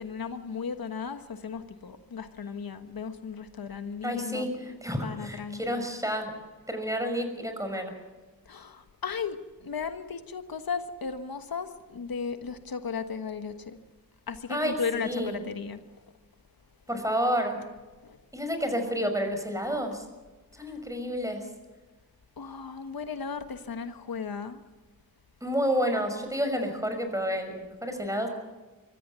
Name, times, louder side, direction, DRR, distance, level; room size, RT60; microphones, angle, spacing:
voice 1, 0.0-4.5 5.0-5.8 8.4-13.8 14.3-16.0 18.0-18.2 20.6-20.8 22.4-24.6, left 6 dB, 90° left, 1.4 m, -36 dB
voice 2, 4.0-6.3 6.7-7.9 14.5-15.4 16.9-17.6 18.3-20.0 20.6-21.5 25.4-28.3, equal, 10° right, 5.9 m, -30 dB
23.5 x 15.0 x 8.2 m
cardioid pair, 50°, 35 cm